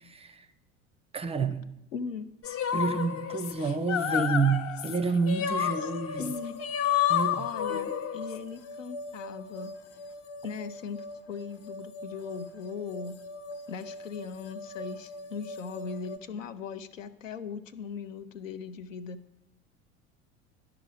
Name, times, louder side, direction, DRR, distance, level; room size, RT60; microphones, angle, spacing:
voice 1, 1.1-1.6 2.7-6.3 7.1-7.3 7.7-7.8, right 4 dB, 15° right, 0.5 m, -28 dB
voice 2, 1.9-2.3 5.8-5.9 6.2-6.6 7.3-9.7 10.4-13.2 13.7-19.2, left 6 dB, 80° left, 0.7 m, -39 dB
sound 1, 2.4-8.4, left 10 dB, 35° left, 0.8 m, -30 dB
sound 2, 6.1-16.2, left 1 dB, 55° left, 1.1 m, -43 dB
11.0 x 6.0 x 4.9 m
figure-of-eight pair, 75°, 38 cm